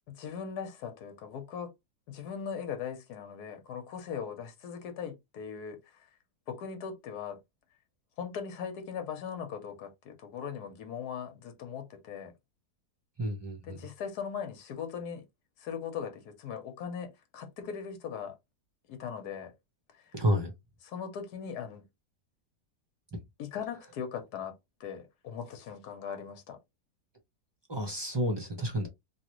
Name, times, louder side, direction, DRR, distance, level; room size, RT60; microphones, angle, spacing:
voice 1, 0.1-1.7 2.1-6.1 6.5-7.4 8.2-12.3 13.6-15.2 15.6-18.4 18.9-19.5 20.8-21.8 23.4-26.6, left 7 dB, 80° left, 1.4 m, -39 dB
voice 2, 13.2-13.8 20.1-20.5 27.7-28.9, equal, 25° right, 0.7 m, -30 dB
3.2 x 2.7 x 3.0 m
omnidirectional pair, 1.7 m